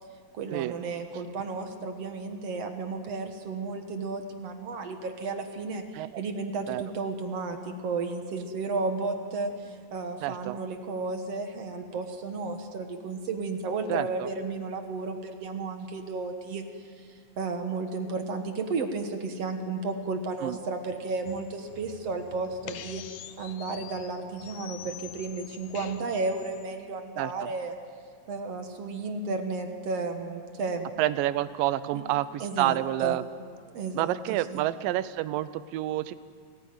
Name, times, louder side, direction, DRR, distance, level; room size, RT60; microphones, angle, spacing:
voice 1, 0.3-9.5 9.9-16.6 17.4-23.0 23.4-27.8 28.3-30.9 32.4-33.2 33.7-34.1 34.5-34.6, right 3 dB, 55° right, 6 dB, 2.1 m, -33 dB
voice 2, 10.2-10.6 13.9-14.3 20.4-20.6 27.2-27.3 31.0-33.2 33.9-36.1, right 14 dB, 75° right, 14 dB, 2.3 m, -28 dB
sound 1, 21.3-26.7, left 10 dB, 85° left, 1.4 m, -45 dB
29.0 x 15.0 x 9.3 m, 2.1 s
omnidirectional pair, 4.2 m